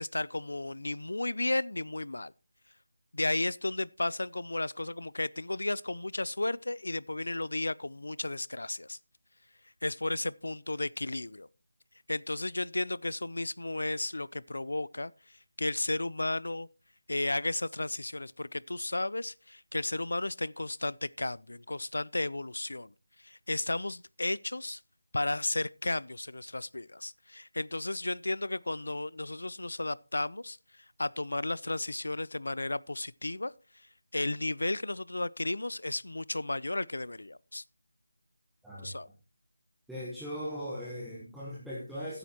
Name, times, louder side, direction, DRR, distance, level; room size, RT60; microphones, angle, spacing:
voice 1, 0.0-2.3 3.1-9.0 9.8-11.5 12.1-16.7 17.1-22.9 23.2-24.8 25.1-30.6 31.0-33.5 34.1-37.6 38.8-39.1, left 2 dB, 75° left, 0.5 m, -33 dB
voice 2, 39.9-42.2, equal, ahead, 1.2 m, -39 dB
15.0 x 9.1 x 2.9 m
figure-of-eight pair, 175°, 0 cm